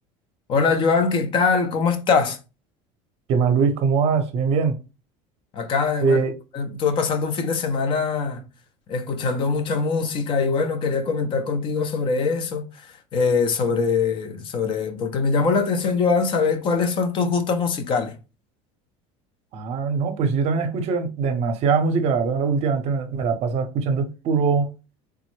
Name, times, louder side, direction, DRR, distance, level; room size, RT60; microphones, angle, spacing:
voice 1, 0.5-2.4 5.5-6.2 6.5-8.4 8.9-18.2, left 4 dB, 35° left, 0.6 m, -22 dB
voice 2, 3.3-4.8 6.0-6.3 19.5-24.7, right 5 dB, 50° right, 0.7 m, -22 dB
3.5 x 2.0 x 3.1 m
cardioid pair, 140°, 14 cm